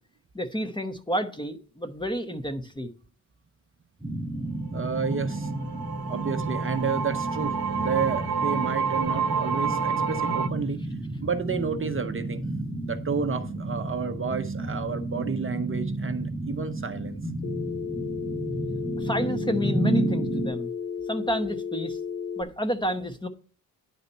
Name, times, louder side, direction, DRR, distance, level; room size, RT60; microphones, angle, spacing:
voice 1, 0.3-2.9 19.0-20.7 21.1-22.0 22.4-23.3, equal, 10° left, 0.9 m, -30 dB
sound 1, 4.0-20.5, right 2 dB, 5° right, 2.6 m, -31 dB
voice 2, 4.7-5.5 6.1-10.8 11.2-12.4 12.8-17.2, right 5 dB, 35° right, 0.7 m, -31 dB
sound 2, 4.7-10.5, right 6 dB, 85° right, 0.9 m, -29 dB
Telephone, 17.4-22.4, left 6 dB, 35° left, 0.4 m, -33 dB
10.5 x 4.1 x 5.4 m
wide cardioid pair, 110°, 37 cm